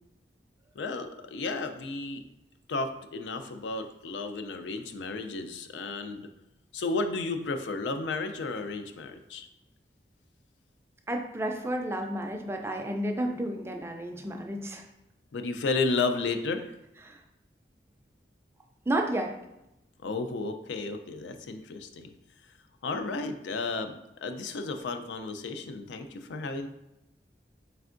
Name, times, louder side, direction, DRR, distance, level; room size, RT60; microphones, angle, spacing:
voice 1, 0.8-2.2 2.7-6.3 6.7-9.5 15.3-16.7 20.0-22.1 22.8-23.9 24.2-26.7, left 3 dB, 85° left, 8 dB, 0.4 m, -33 dB
voice 2, 11.1-14.9 17.0-17.2 18.9-19.3, right 1 dB, 15° right, 3 dB, 0.3 m, -31 dB
4.3 x 3.4 x 2.5 m, 0.89 s
head